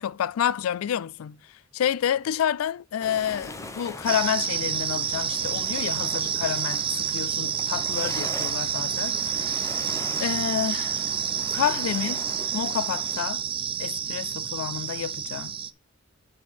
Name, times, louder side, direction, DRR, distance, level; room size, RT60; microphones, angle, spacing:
voice 1, 0.0-1.4 1.7-9.6 10.2-11.1 11.5-12.3 12.5-13.4 13.8-15.6, left 9 dB, 90° left, 0.3 m, -29 dB
sound 1, 3.0-13.2, left 2 dB, 15° left, 0.9 m, -41 dB
sound 2, 4.1-15.7, right 8 dB, 25° right, 0.4 m, -29 dB
7.4 x 4.4 x 5.7 m
head